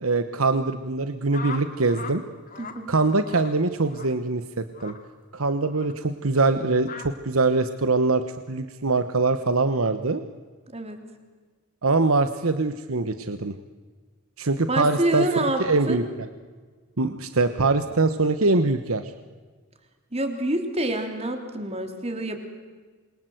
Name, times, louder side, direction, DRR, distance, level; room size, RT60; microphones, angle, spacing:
voice 1, 0.0-2.2 2.9-5.0 5.3-10.2 11.8-13.5 14.4-15.3 15.6-16.3 17.0-19.1, right 3 dB, 80° right, 10 dB, 1.2 m, -23 dB
sound 1, 1.3-2.2 2.5-2.8 3.2-3.5 3.9-4.1 4.7-5.0 5.7-5.9 6.8-7.1, left 5 dB, 40° left, 2.6 m, -38 dB
voice 2, 2.6-2.9 10.7-11.0 14.7-15.6 15.9-16.0 20.1-22.4, right 1 dB, 30° right, 6 dB, 3.4 m, -27 dB
28.0 x 23.0 x 7.9 m, 1.4 s
head